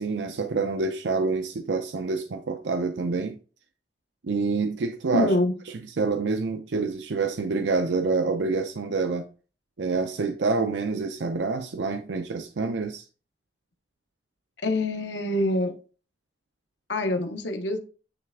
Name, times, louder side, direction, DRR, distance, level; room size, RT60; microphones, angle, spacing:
voice 1, 0.0-3.4 4.2-5.3 6.0-9.3 9.8-13.0, right 4 dB, 90° right, 0.5 m, -27 dB
voice 2, 5.1-5.5 14.6-15.8 16.9-17.8, left 1 dB, 90° left, 1.0 m, -25 dB
9.6 x 3.3 x 3.6 m
head